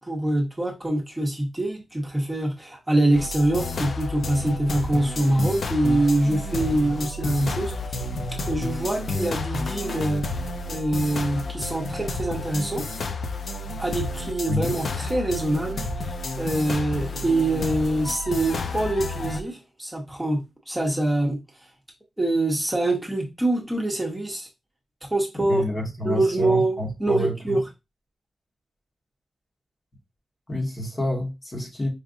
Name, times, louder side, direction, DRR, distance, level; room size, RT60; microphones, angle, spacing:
voice 1, 0.0-8.1 8.5-10.3 10.7-12.9 13.8-21.4 22.2-24.5 25.1-25.6 26.0-27.6, right 1 dB, 10° right, 1.0 m, -25 dB
sound 1, 3.1-19.4, left 2 dB, 75° left, 0.4 m, -31 dB
voice 2, 25.5-27.6 30.5-31.9, equal, 35° left, 1.3 m, -29 dB
4.9 x 2.5 x 2.6 m
wide cardioid pair, 100°, 0 cm